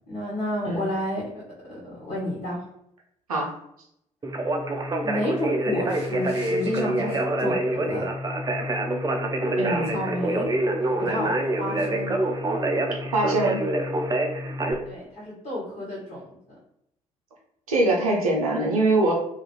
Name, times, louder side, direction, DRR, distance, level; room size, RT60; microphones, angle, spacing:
voice 1, 0.1-1.4 1.8-2.6 5.0-8.0 9.9-10.5 10.8-12.1 14.8-16.2, left 1 dB, 50° left, -8 dB, 1.3 m, -30 dB
Conversation, 4.2-14.7, right 1 dB, 20° right, 0.5 m, -26 dB
voice 2, 9.6-9.9 13.1-13.6 17.7-19.1, right 2 dB, 85° right, -1 dB, 0.5 m, -22 dB
2.4 x 2.3 x 3.0 m, 0.75 s
figure-of-eight pair, 40°, 18 cm